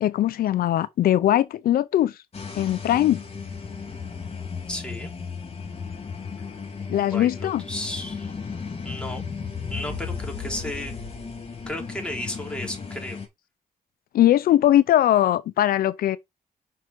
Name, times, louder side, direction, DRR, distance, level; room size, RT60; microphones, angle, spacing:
voice 1, 0.0-2.2 2.5-3.2 6.9-7.6 14.1-16.2, left 12 dB, 80° left, 0.6 m, -20 dB
sound 1, 2.3-13.3, left 5 dB, 40° left, 3.5 m, -35 dB
voice 2, 4.7-5.1 6.8-8.3 8.8-9.3 9.7-10.9 11.7-13.2, left 1 dB, 5° left, 3.9 m, -34 dB
6.1 x 5.6 x 4.6 m
cardioid pair, 85°, 15 cm